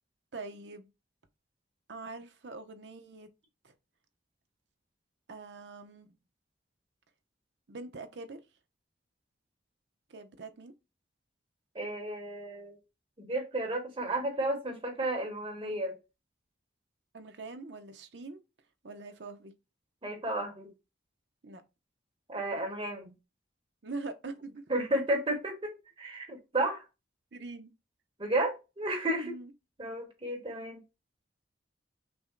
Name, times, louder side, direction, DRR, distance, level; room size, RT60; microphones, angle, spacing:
voice 1, 0.3-0.9 1.9-3.3 3.6-3.7 5.3-6.2 7.7-8.4 10.1-10.7 17.1-18.4 18.8-19.5 21.4-21.6 23.8-24.6 27.3-27.7 29.2-29.5, right 3 dB, 70° right, 0.7 m, -43 dB
voice 2, 11.7-12.8 13.2-16.0 20.0-20.7 22.3-23.1 24.7-25.7 26.0-26.8 28.2-29.3 29.8-30.8, right 1 dB, 30° right, 1.4 m, -32 dB
5.9 x 2.1 x 3.8 m
head